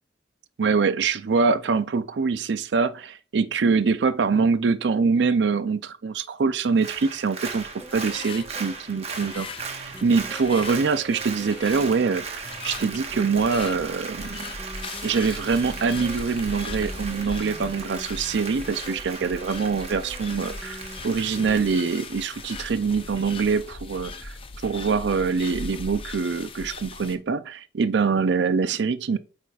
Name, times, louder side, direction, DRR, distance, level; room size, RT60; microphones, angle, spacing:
voice 1, 0.6-9.5 9.8-14.5 15.0-20.8 21.0-24.3 24.6-29.2, right 5 dB, 70° right, 0.5 m, -24 dB
Applause, 6.7-23.3 23.7-23.8, right 4 dB, 35° right, 0.9 m, -38 dB
sound 1, 7.5-27.2, left 3 dB, 30° left, 0.5 m, -39 dB
sound 2, 7.8-21.7, right 1 dB, ahead, 1.4 m, -45 dB
8.4 x 4.9 x 2.4 m
head